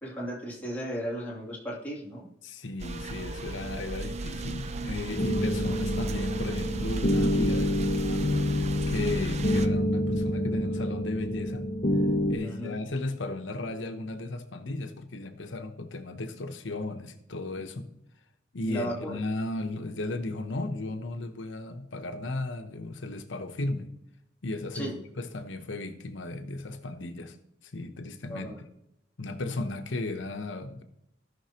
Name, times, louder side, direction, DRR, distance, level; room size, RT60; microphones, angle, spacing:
voice 1, 0.0-2.3 12.4-12.8 18.7-19.2 24.7-24.9 28.3-28.6, equal, 10° left, -5 dB, 2.5 m, -35 dB
voice 2, 2.4-8.2 8.5-11.7 12.3-17.9 18.5-23.9 24.4-27.4 27.7-28.7 29.2-30.8, left 2 dB, 85° left, 6 dB, 0.9 m, -35 dB
sound 1, 2.8-9.7, right 2 dB, 35° right, 0.5 m, -35 dB
sound 2, 5.2-12.4, left 1 dB, 40° left, 0.8 m, -27 dB
16.5 x 5.8 x 2.9 m, 0.81 s
head